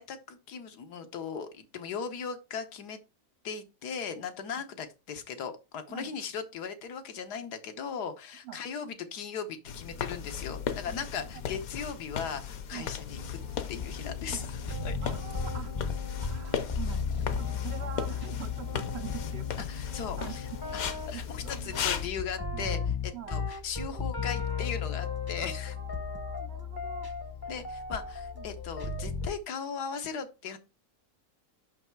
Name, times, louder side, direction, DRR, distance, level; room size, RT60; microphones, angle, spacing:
voice 1, 0.0-3.0 3.4-13.4 13.7-14.5 14.8-15.0 19.7-25.7 27.5-30.6, left 6 dB, 85° left, 1.6 m, -38 dB
sound 1, 9.7-22.1, left 8 dB, 70° left, 1.2 m, -36 dB
sound 2, 13.1-29.3, left 5 dB, 25° left, 0.5 m, -36 dB
voice 2, 15.0-15.7 16.2-19.9 20.2-20.6 21.1-21.9 22.5-22.8 23.1-23.4 25.4-27.1 28.4-28.5, right 10 dB, 80° right, 0.5 m, -44 dB
5.8 x 5.7 x 4.5 m
omnidirectional pair, 1.7 m